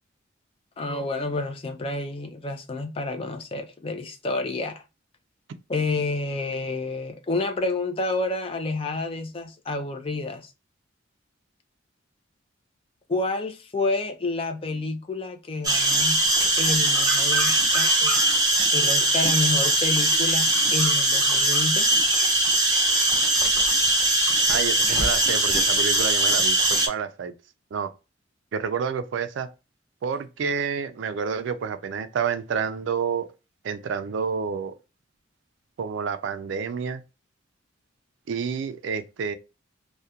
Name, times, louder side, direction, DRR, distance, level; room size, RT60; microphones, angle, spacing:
voice 1, 0.8-4.8 5.7-10.5 13.1-16.2 16.6-18.2 18.7-21.9, left 3 dB, 30° left, 0.4 m, -29 dB
sound 1, 15.6-26.9, right 1 dB, 20° right, 0.6 m, -21 dB
voice 2, 24.5-27.3 27.7-27.9 28.5-29.5 30.0-33.3 33.6-34.8 35.8-37.0 38.3-39.3, right 6 dB, 70° right, 0.3 m, -29 dB
2.3 x 2.1 x 2.7 m
head